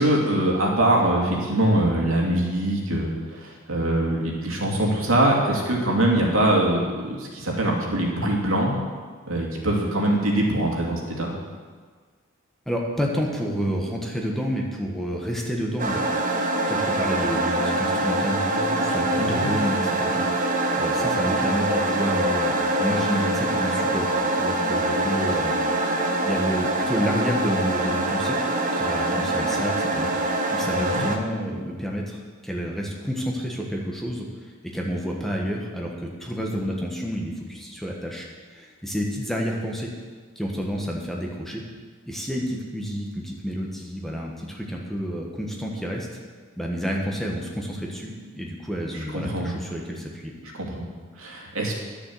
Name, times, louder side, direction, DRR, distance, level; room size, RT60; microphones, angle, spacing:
voice 1, 0.0-8.7 9.3-11.3 19.2-19.5 30.9-31.0 49.1-49.5 50.6-50.9 51.2-51.7, right 1 dB, 85° right, -2 dB, 2.6 m, -23 dB
voice 2, 12.7-16.0 16.6-20.2 20.8-25.5 26.2-28.4 28.7-30.1 30.5-39.9 40.3-41.6 42.1-46.1 46.6-50.3, equal, ahead, -2 dB, 1.4 m, -29 dB
sound 1, 15.8-31.2, right 2 dB, 40° right, 1.0 m, -24 dB
11.0 x 7.1 x 7.8 m, 1.5 s
head